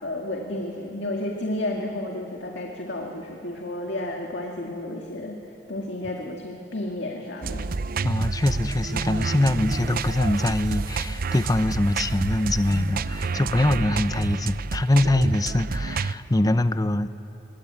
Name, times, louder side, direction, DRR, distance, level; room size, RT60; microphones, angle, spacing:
voice 1, 0.0-5.4 5.7-7.7, left 1 dB, 70° left, 0 dB, 2.1 m, -32 dB
sound 1, 7.4-16.1, right 4 dB, 50° right, 0.5 m, -29 dB
voice 2, 8.0-17.1, left 1 dB, 20° left, 12 dB, 0.7 m, -23 dB
26.5 x 21.5 x 8.8 m, 3.0 s
head